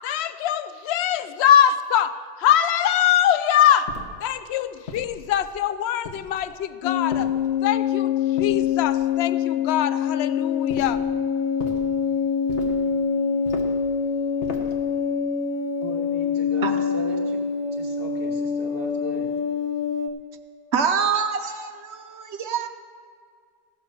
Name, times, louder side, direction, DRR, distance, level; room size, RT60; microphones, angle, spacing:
voice 1, 0.0-3.9 4.2-7.3 7.6-11.0, left 10 dB, 70° left, 0.6 m, -22 dB
sound 1, 3.9-4.3 4.9-5.5 6.0-6.6 7.1-7.8 8.4-9.1 10.7-11.1 11.6-11.9 12.5-12.9 13.5-13.9 14.4-14.8, left 3 dB, 50° left, 1.4 m, -37 dB
sound 2, 6.8-20.1, left 7 dB, 85° left, 1.4 m, -25 dB
voice 2, 15.8-17.4 17.7-19.3, right 3 dB, 40° right, 1.8 m, -38 dB
voice 3, 20.7-22.7, right 6 dB, 55° right, 0.9 m, -25 dB
16.5 x 6.0 x 6.7 m
omnidirectional pair, 1.6 m